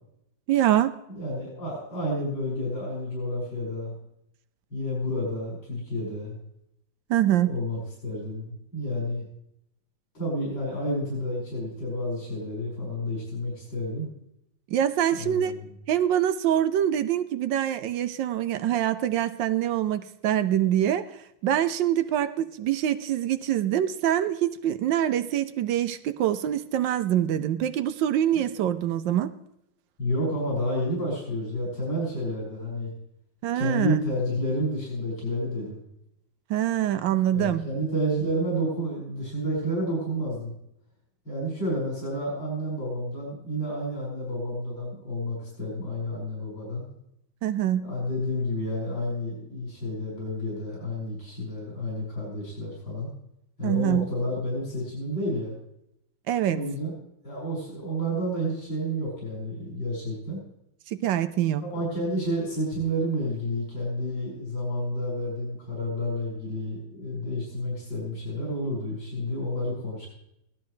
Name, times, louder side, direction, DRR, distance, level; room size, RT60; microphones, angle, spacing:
voice 1, 0.5-0.9 7.1-7.5 14.7-15.5 15.9-21.1 21.4-29.3 33.4-34.0 36.5-37.6 47.4-47.8 53.6-54.1 56.3-56.6 60.9-61.6, right 11 dB, 75° right, 11 dB, 1.3 m, -25 dB
voice 2, 1.1-3.9 4.7-6.4 7.3-9.2 10.1-14.1 15.2-15.7 30.0-32.9 33.5-35.8 37.3-40.5 41.2-46.9 47.8-53.1 53.6-55.5 56.5-57.0 57.2-60.4 61.6-70.1, equal, 70° left, -6 dB, 6.2 m, -30 dB
17.0 x 12.5 x 3.2 m, 0.79 s
omnidirectional pair, 2.1 m